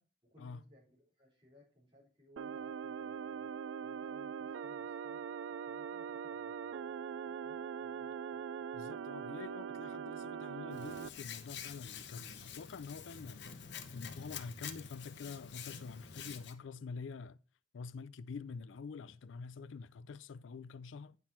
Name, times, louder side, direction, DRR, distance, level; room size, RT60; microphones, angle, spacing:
voice 1, 0.0-3.5 3.8-5.2 5.6-8.4, left 1 dB, 25° right, 4.1 m, -64 dB
sound 1, 2.4-11.1, right 7 dB, 80° right, 0.3 m, -42 dB
voice 2, 8.7-13.5 13.9-17.4 17.7-21.2, left 5 dB, 80° left, 0.4 m, -47 dB
Hands, 10.7-16.5, left 7 dB, 65° left, 0.9 m, -48 dB
9.0 x 6.0 x 4.3 m
head